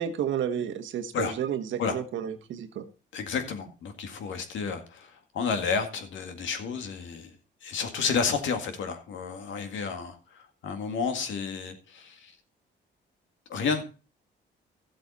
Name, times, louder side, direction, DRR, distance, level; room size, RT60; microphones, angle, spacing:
voice 1, 0.0-2.9, right 8 dB, 75° right, 8 dB, 1.3 m, -31 dB
voice 2, 3.1-7.3 7.6-12.4 13.5-13.9, left 5 dB, 75° left, 7 dB, 2.0 m, -31 dB
13.0 x 7.8 x 4.1 m, 0.33 s
cardioid pair, 90°, 20 cm